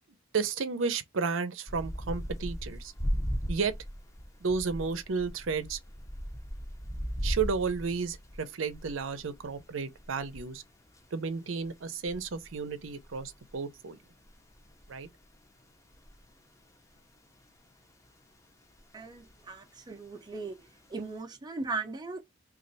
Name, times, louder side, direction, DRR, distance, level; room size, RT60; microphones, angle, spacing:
voice 1, 0.3-2.9 3.5-3.7 4.4-5.8 7.2-10.6 11.1-14.0 14.9-15.1, right 5 dB, 80° right, 0.6 m, -32 dB
sound 1, 1.7-16.9 17.5-18.4 18.8-20.1 20.3-21.1, equal, 15° left, 0.6 m, -38 dB
voice 2, 18.9-19.6 19.9-20.5 20.9-22.2, right 3 dB, 20° right, 0.6 m, -37 dB
3.1 x 2.4 x 3.9 m
head